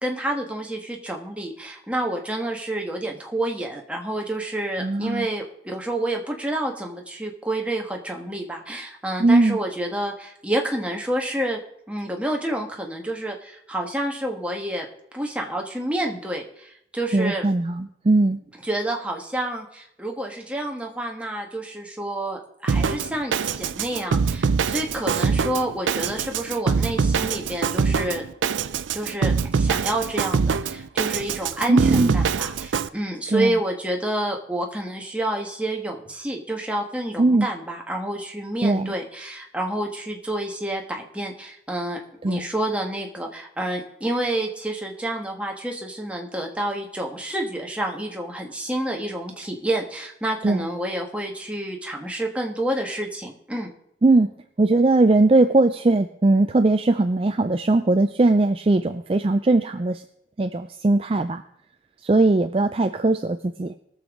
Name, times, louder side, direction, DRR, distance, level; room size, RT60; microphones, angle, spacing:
voice 1, 0.0-11.6 11.9-14.9 15.1-17.4 18.6-28.2 28.7-53.7, right 1 dB, 5° right, 1 dB, 1.3 m, -29 dB
voice 2, 4.8-5.3 9.2-9.6 17.1-18.4 31.7-32.2 33.3-33.6 37.2-37.5 38.6-38.9 42.2-42.5 50.4-50.7 54.0-54.3 54.6-60.0 60.4-61.4 62.0-63.7, right 2 dB, 30° right, 8 dB, 0.4 m, -19 dB
Drum kit, 22.7-32.9, right 5 dB, 90° right, 0.5 m, -24 dB
20.5 x 7.0 x 3.7 m, 0.74 s
head